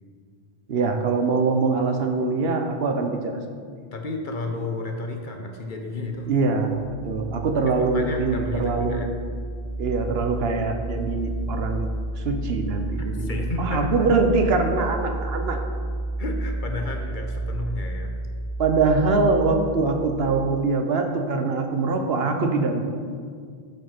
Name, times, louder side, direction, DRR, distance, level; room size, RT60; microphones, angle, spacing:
voice 1, 0.7-3.4 6.3-9.0 9.8-11.9 12.2-15.6 18.6-22.8, right 4 dB, 70° right, 5 dB, 1.0 m, -23 dB
voice 2, 3.9-6.3 7.7-9.1 13.0-14.1 16.2-18.1, left 2 dB, 50° left, 3 dB, 1.0 m, -32 dB
sound 1, 6.6-20.7, right 2 dB, 35° right, 0.5 m, -31 dB
9.0 x 5.4 x 5.7 m, 2.1 s
omnidirectional pair, 1.1 m